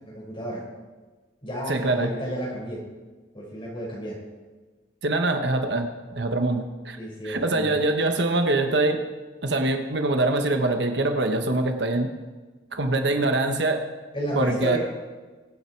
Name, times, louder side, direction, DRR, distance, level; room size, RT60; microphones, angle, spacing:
voice 1, 0.0-0.7 1.4-2.9 3.3-4.2 7.0-7.8 14.1-14.8, equal, 30° left, -4 dB, 5.6 m, -31 dB
voice 2, 1.7-2.1 5.0-7.0 7.2-9.0 9.4-12.1 12.7-13.8 14.3-14.8, right 2 dB, 65° right, 6 dB, 1.2 m, -24 dB
23.5 x 8.9 x 4.7 m, 1.3 s
head